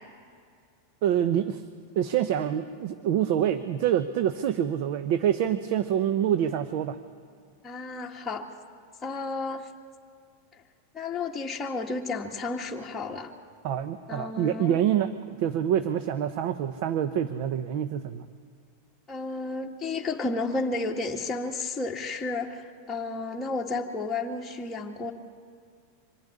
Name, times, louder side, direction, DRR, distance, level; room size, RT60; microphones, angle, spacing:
voice 1, 1.0-1.6 2.0-7.0 13.6-18.2, right 10 dB, 60° right, 10 dB, 0.9 m, -26 dB
voice 2, 7.6-8.5 9.0-9.7 10.5-10.6 10.9-13.3 14.1-14.8 19.1-25.1, left 3 dB, 15° left, -3 dB, 1.8 m, -32 dB
25.0 x 11.0 x 10.0 m, 2.3 s
hypercardioid pair, 120°, 0 cm